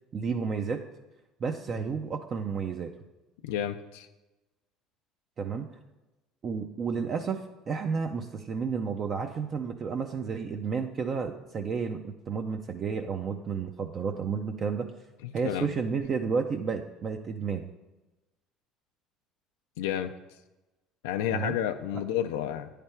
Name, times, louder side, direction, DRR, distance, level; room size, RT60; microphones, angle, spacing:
voice 1, 0.1-0.8 1.4-2.9 5.4-5.7 6.4-14.9 15.3-17.7 21.3-21.5, right 5 dB, 45° right, 5 dB, 0.4 m, -31 dB
voice 2, 3.4-4.1 15.2-15.7 19.8-20.1 21.0-22.7, left 10 dB, 85° left, 7 dB, 0.3 m, -31 dB
9.5 x 3.3 x 4.4 m, 1.1 s
supercardioid pair, 85°, 0 cm